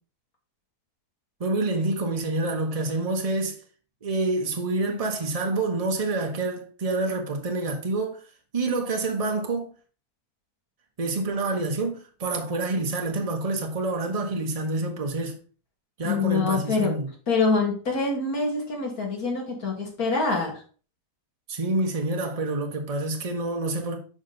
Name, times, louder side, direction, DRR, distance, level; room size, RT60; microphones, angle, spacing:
voice 1, 1.4-3.6 4.0-8.2 8.5-9.7 11.0-15.4 16.0-17.1 21.5-24.0, right 2 dB, 25° right, 1.0 m, -27 dB
voice 2, 16.0-16.9 17.3-20.5, left 4 dB, 65° left, 2.5 m, -25 dB
6.1 x 5.0 x 3.9 m
omnidirectional pair, 1.7 m